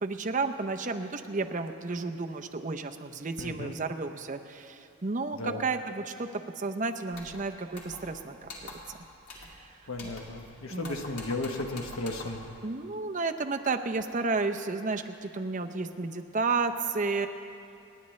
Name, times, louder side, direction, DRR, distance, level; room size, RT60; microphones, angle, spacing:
voice 1, 0.0-6.3 6.6-9.0 9.4-9.7 10.0-10.1 10.7-11.0 12.6-17.3, right 3 dB, 35° right, 5 dB, 0.6 m, -32 dB
voice 2, 3.4-3.8 5.4-5.6 9.9-12.4, left 2 dB, 70° left, 4 dB, 1.1 m, -35 dB
sound 1, 7.1-7.4 7.7-8.2 8.4-8.9 9.3-9.6 9.9-10.5 10.8-12.5, left 2 dB, 90° left, 2.5 m, -45 dB
28.5 x 9.9 x 3.2 m, 2.6 s
head